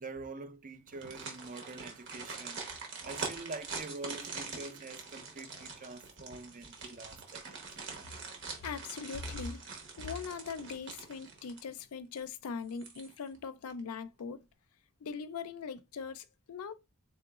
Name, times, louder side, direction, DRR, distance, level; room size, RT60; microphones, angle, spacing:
voice 1, 0.0-7.4, right 3 dB, 35° right, 0.5 m, -45 dB
sound 1, 0.9-11.8 12.2-12.3 12.7-13.4 13.7-13.8, right 4 dB, 55° right, 1.0 m, -44 dB
voice 2, 8.4-9.6 10.0-14.5 15.0-16.7, left 5 dB, 75° left, 0.4 m, -41 dB
3.8 x 3.4 x 2.4 m
head